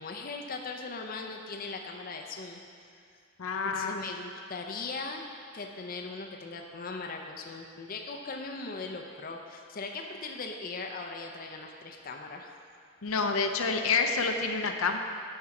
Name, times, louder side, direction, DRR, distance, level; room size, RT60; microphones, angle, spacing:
voice 1, 0.0-2.6 3.6-5.2 5.5-12.5, left 3 dB, 40° left, 2 dB, 0.5 m, -39 dB
voice 2, 3.4-4.0 13.0-15.0, left 4 dB, 80° left, 5 dB, 0.6 m, -28 dB
8.4 x 5.5 x 5.9 m, 2.3 s
head